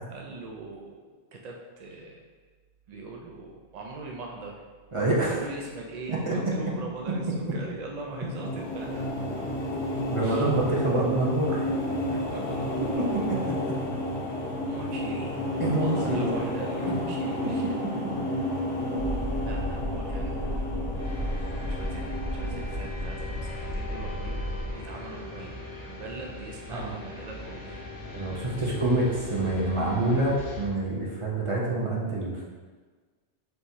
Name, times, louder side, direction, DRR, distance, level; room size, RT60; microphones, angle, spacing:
voice 1, 0.1-2.3 2.9-4.6 5.3-9.2 10.2-10.5 12.3-12.9 14.7-15.4 15.8-18.0 19.4-20.8 21.6-24.4 24.7-25.6 25.9-27.8, right 3 dB, 70° right, 0 dB, 0.4 m, -41 dB
voice 2, 4.9-5.4 6.1-6.3 10.1-11.7 12.9-13.5 15.6-16.3 16.9-17.0 26.7-26.9 28.1-32.4, right 2 dB, 30° right, -5 dB, 0.7 m, -26 dB
sound 1, 8.0-23.3, left 1 dB, 90° left, 1.2 m, -31 dB
sound 2, 18.9-24.7, equal, 85° right, 1.5 m, -33 dB
sound 3, 20.9-30.7, left 2 dB, 40° left, 0.7 m, -40 dB
5.5 x 3.0 x 2.7 m, 1.4 s
omnidirectional pair, 1.2 m